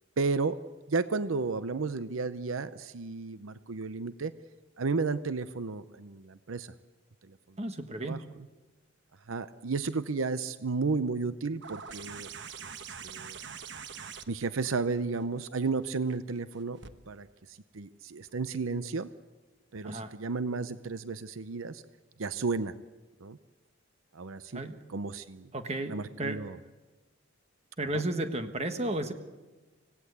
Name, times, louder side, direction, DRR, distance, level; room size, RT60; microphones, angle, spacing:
voice 1, 0.2-0.6 0.9-4.3 4.8-6.7 8.0-8.2 9.3-12.3 12.9-13.4 14.3-16.8 17.1-17.3 17.7-19.1 19.7-21.8 22.2-22.7 23.2-23.4 24.1-24.6 24.9-25.5 25.9-26.6, right 4 dB, 80° right, 13 dB, 0.7 m, -32 dB
voice 2, 7.6-8.3 19.8-20.1 24.5-24.8 25.5-26.4 27.8-29.1, right 1 dB, 30° right, 7 dB, 1.4 m, -33 dB
sound 1, 11.6-16.9 18.3-18.4, right 6 dB, 60° right, 1.2 m, -45 dB
25.5 x 17.5 x 8.1 m, 1.3 s
head